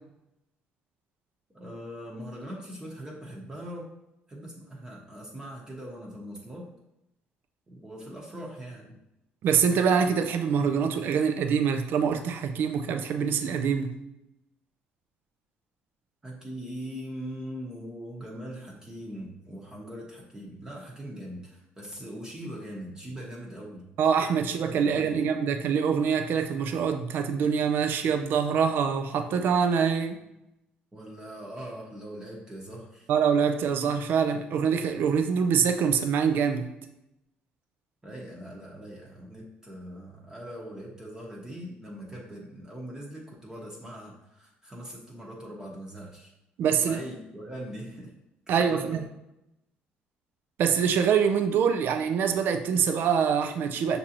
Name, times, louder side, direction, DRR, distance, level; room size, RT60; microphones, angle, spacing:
voice 1, 1.5-3.9 4.3-6.7 7.7-9.0 16.2-23.9 24.7-25.3 30.9-33.1 38.0-46.3 46.8-48.2 48.5-49.0, equal, 15° right, 1.0 m, -41 dB
voice 2, 9.4-14.0 24.0-30.2 33.1-36.7 46.6-47.0 48.5-49.0 50.6-54.0, right 7 dB, 65° right, 0.4 m, -25 dB
5.9 x 2.6 x 2.8 m
cardioid pair, 90°, 4 cm